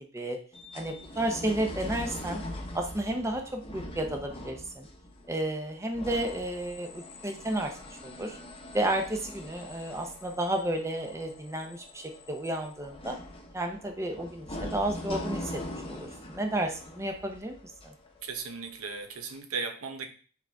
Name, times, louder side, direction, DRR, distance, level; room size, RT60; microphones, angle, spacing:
sound 1, 0.5-18.7 19.3-19.4, left 1 dB, 25° left, 0.9 m, -42 dB
voice 1, 0.7-2.4 2.7-4.9 5.3-7.7 8.0-8.4 8.7-13.2 13.5-15.6 15.9-17.6, right 1 dB, 15° right, 3 dB, 0.6 m, -32 dB
voice 2, 18.2-20.1, right 5 dB, 80° right, 6 dB, 0.9 m, -36 dB
7.5 x 3.9 x 3.4 m, 0.40 s
head